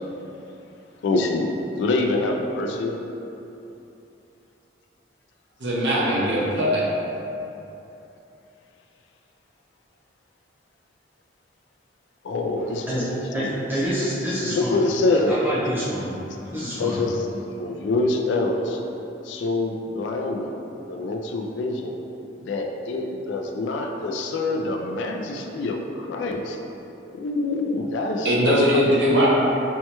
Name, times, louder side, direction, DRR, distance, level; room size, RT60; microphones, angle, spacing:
voice 1, 1.0-3.0 12.2-12.9 13.1-13.6 14.5-15.4 16.8-17.3 17.6-18.8 19.2-20.6 20.9-21.9 22.4-26.6 27.1-29.0, left 2 dB, 75° left, 2 dB, 0.3 m, -25 dB
voice 2, 5.6-6.8 28.2-29.3, equal, 70° right, -5 dB, 0.7 m, -20 dB
voice 3, 12.6-13.0 13.3-16.2 16.5-17.0, equal, 10° right, -10 dB, 0.8 m, -28 dB
4.4 x 2.2 x 2.9 m, 2.9 s
head